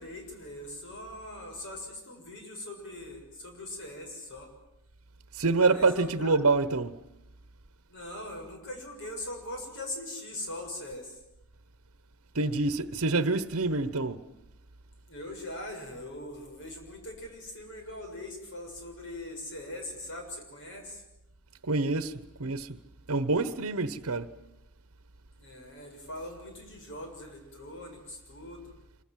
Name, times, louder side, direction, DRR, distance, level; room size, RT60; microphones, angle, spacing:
voice 1, 0.0-4.5 5.7-6.4 7.9-11.2 15.1-21.0 25.4-28.7, left 1 dB, 60° left, 6.9 m, -41 dB
voice 2, 5.4-7.0 12.3-14.2 21.7-22.1 22.4-22.8 23.1-24.3, right 3 dB, 65° right, 1.1 m, -26 dB
26.5 x 24.0 x 7.6 m
head